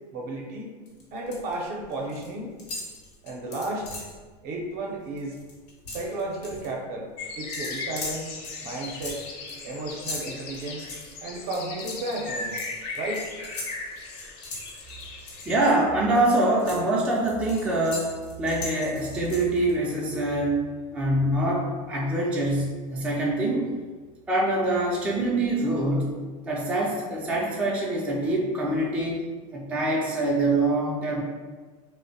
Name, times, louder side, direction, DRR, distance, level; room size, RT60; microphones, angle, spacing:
voice 1, 0.1-0.7 1.1-2.5 3.2-4.1 4.4-5.4 5.9-8.3 8.6-9.2 9.6-10.8 11.2-12.6 13.0-13.3, right 2 dB, 50° right, 0 dB, 0.6 m, -33 dB
sound 1, 0.9-1.5 1.8-2.3 2.6-4.2 4.6-4.8 5.1-6.7 7.5-15.7 16.1-19.7, left 2 dB, 90° left, 0.8 m, -39 dB
sound 2, 7.2-15.7, left 3 dB, 55° left, 0.5 m, -37 dB
voice 2, 15.5-18.1 18.4-20.6 20.9-23.7 24.3-26.2 26.5-29.2 29.5-31.2, right 1 dB, 5° right, -4 dB, 0.3 m, -24 dB
2.5 x 2.0 x 2.6 m, 1.4 s
supercardioid pair, 115°, 20 cm